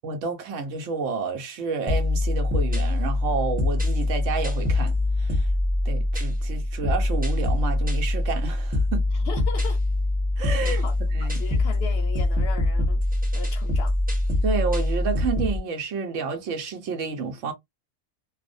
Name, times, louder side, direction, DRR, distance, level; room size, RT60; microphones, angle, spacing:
voice 1, 0.0-4.9 5.2-5.5 5.8-9.1 10.4-11.4 14.4-17.5, right 5 dB, 80° right, 1.0 m, -30 dB
sound 1, 1.9-15.6, left 2 dB, 10° right, 0.6 m, -24 dB
voice 2, 9.3-9.8 10.6-13.0 13.3-13.9, left 5 dB, 65° left, 0.7 m, -38 dB
2.5 x 2.1 x 2.4 m
omnidirectional pair, 1.3 m